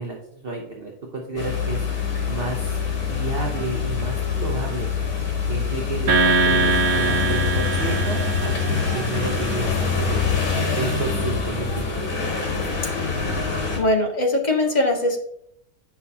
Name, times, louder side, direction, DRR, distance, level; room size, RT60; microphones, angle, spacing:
voice 1, 0.0-1.9 2.3-2.8 3.1-4.9 5.5-10.2 10.8-11.9, right 3 dB, 45° right, 0 dB, 1.0 m, -31 dB
sound 1, 1.4-13.8, left 5 dB, 65° left, 1.9 m, -25 dB
sound 2, 6.1-9.6, right 4 dB, 70° right, 1.7 m, -23 dB
voice 2, 13.8-15.2, left 1 dB, 30° left, 2 dB, 1.1 m, -21 dB
9.2 x 5.7 x 2.8 m, 0.76 s
omnidirectional pair, 1.5 m